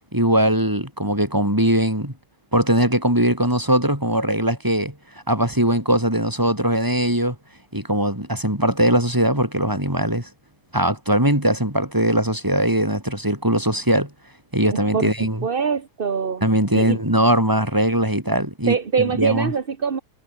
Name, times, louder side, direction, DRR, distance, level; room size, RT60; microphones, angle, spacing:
voice 1, 0.1-2.1 2.5-4.9 5.3-7.4 7.7-10.3 10.7-14.1 14.5-15.5 16.4-19.5, right 1 dB, 10° right, 5.5 m, -20 dB
voice 2, 15.4-16.5 16.7-17.0 18.7-20.0, right 6 dB, 35° right, 1.1 m, -23 dB
omnidirectional pair, 2.4 m